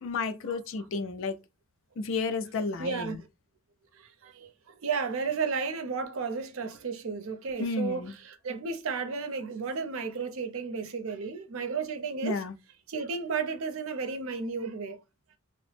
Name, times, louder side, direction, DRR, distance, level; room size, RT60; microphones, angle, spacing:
voice 1, 0.0-1.4 2.0-3.2 7.6-8.1 12.2-12.5, left 4 dB, 65° left, 0.4 m, -32 dB
voice 2, 2.8-3.2 4.0-4.5 4.8-12.4 12.9-15.0, right 5 dB, 75° right, 0.5 m, -33 dB
2.9 x 2.0 x 3.2 m
head